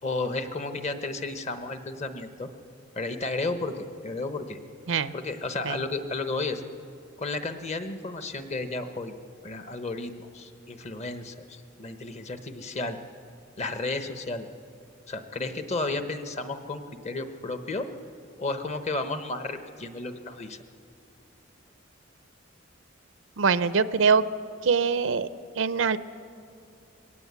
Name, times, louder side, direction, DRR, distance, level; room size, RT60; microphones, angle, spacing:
voice 1, 0.0-2.5 2.9-4.6 5.1-6.6 7.2-9.1 9.4-13.0 13.6-14.5 15.1-17.9 18.4-20.6, left 3 dB, 35° left, 8 dB, 1.0 m, -33 dB
voice 2, 23.4-24.2 24.6-25.3 25.6-26.0, right 5 dB, 85° right, 15 dB, 0.6 m, -23 dB
21.0 x 17.0 x 8.3 m, 2.6 s
head